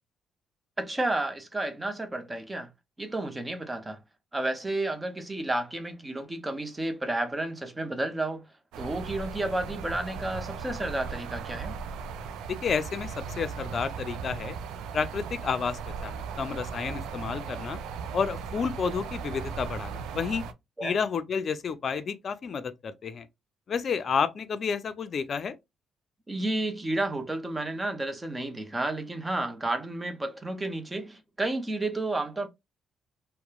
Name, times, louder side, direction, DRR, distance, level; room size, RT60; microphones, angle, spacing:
voice 1, 0.8-2.7 3.0-4.0 4.3-8.4 8.8-11.8 20.8-21.0 26.3-32.5, right 2 dB, 20° right, 0.7 m, -31 dB
sound 1, 8.7-20.5, right 6 dB, 80° right, 0.4 m, -37 dB
voice 2, 12.5-14.6 14.9-17.8 18.1-20.4 20.8-23.3 23.7-25.6, left 6 dB, 50° left, 0.4 m, -30 dB
2.9 x 2.1 x 2.3 m
supercardioid pair, 70°, 0 cm